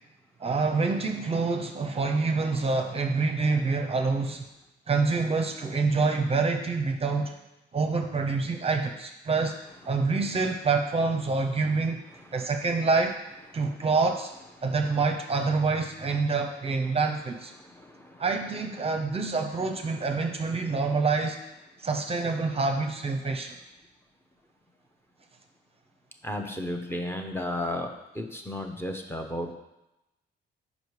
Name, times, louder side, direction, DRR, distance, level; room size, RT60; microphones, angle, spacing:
voice 1, 0.4-4.4 4.9-7.3 7.7-9.6 9.8-12.0 12.3-13.2 13.5-14.3 14.6-17.5 18.2-21.4 21.8-23.6, right 4 dB, 30° right, 4 dB, 0.7 m, -26 dB
voice 2, 12.1-12.5 13.5-13.9 14.6-14.7 17.5-18.3 26.2-27.9 28.1-29.5, left 1 dB, 10° left, 3 dB, 0.8 m, -34 dB
5.2 x 5.1 x 4.8 m, 0.93 s
cardioid pair, 90°, 20 cm